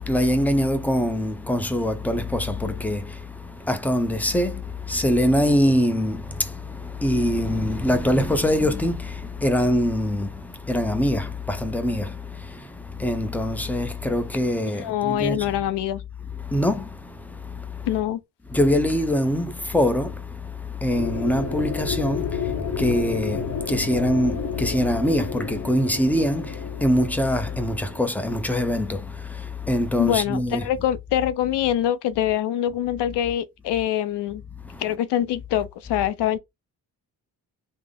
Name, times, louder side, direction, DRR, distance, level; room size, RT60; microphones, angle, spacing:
voice 1, 0.0-15.5 16.3-17.9 18.5-30.7 34.5-34.8, equal, 5° left, 0.6 m, -24 dB
voice 2, 14.7-16.0 17.8-18.2 30.0-34.4 34.8-36.4, left 11 dB, 75° left, 0.6 m, -24 dB
sound 1, 20.9-29.0, left 6 dB, 40° left, 0.7 m, -31 dB
3.5 x 2.0 x 3.6 m
cardioid pair, 85°, 41 cm